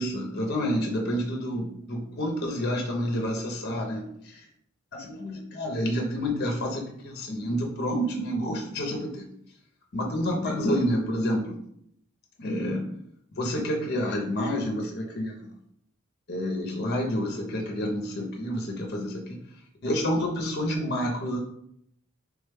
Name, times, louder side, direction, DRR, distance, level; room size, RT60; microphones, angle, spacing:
voice 1, 0.0-4.0 4.3-4.4 4.9-9.3 9.9-11.6 12.4-12.9 13.3-15.3 16.3-19.4 19.8-21.4, equal, 50° left, 1 dB, 0.5 m, -29 dB
3.4 x 2.1 x 3.3 m, 0.70 s
head